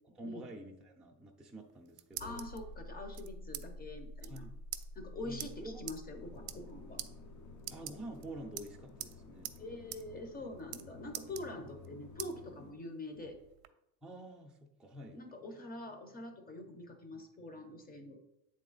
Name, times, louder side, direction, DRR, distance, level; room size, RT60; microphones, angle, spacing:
voice 1, 0.1-2.5 4.3-4.5 5.2-5.8 7.7-9.5 14.0-15.2, right 1 dB, ahead, 0 dB, 0.6 m, -48 dB
sound 1, 1.6-2.6 3.1-3.6 3.9-4.0 4.2-4.4 4.7-4.8 5.4-5.5 5.9-6.0 6.4-6.7 7.0-7.1 7.6-8.2 8.6-9.1 9.4-9.6 9.9-10.0 10.3-10.8 11.1-11.9 12.2-12.3 12.8-13.7, right 14 dB, 70° right, 0.6 m, -44 dB
sound 2, 2.2-10.6 12.1-12.2, left 1 dB, 80° left, 0.8 m, -50 dB
voice 2, 2.2-4.5 4.9-7.0 9.6-13.4 15.1-18.2, left 2 dB, 25° left, 6 dB, 0.9 m, -45 dB
sound 3, 6.1-12.7, left 4 dB, 50° left, 0.9 m, -54 dB
8.2 x 3.7 x 4.0 m, 0.86 s
cardioid pair, 145°, 38 cm